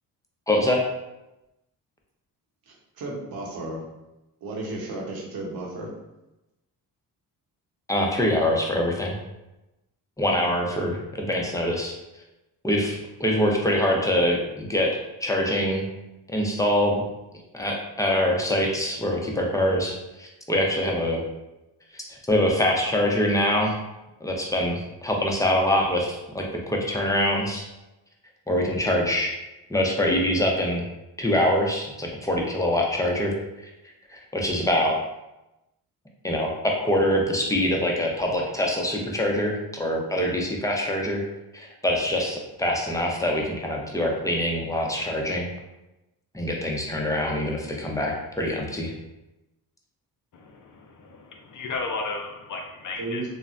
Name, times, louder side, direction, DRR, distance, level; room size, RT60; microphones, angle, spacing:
voice 1, 0.5-0.8 7.9-9.2 10.2-12.0 12.6-15.9 16.3-17.0 17.5-21.2 21.9-23.8 24.2-27.7 28.5-29.3 29.7-30.8 31.2-33.3 33.6-33.7 34.1-35.0 36.2-41.2 41.5-45.5 46.3-48.9, left 1 dB, 10° left, -1 dB, 0.6 m, -24 dB
voice 2, 2.7-3.9 4.4-5.9 53.0-53.2, right 2 dB, 60° right, -2 dB, 0.9 m, -34 dB
voice 3, 50.3-53.2, left 3 dB, 50° left, 2 dB, 0.5 m, -34 dB
3.1 x 2.1 x 2.5 m, 0.97 s
cardioid pair, 65°, 40 cm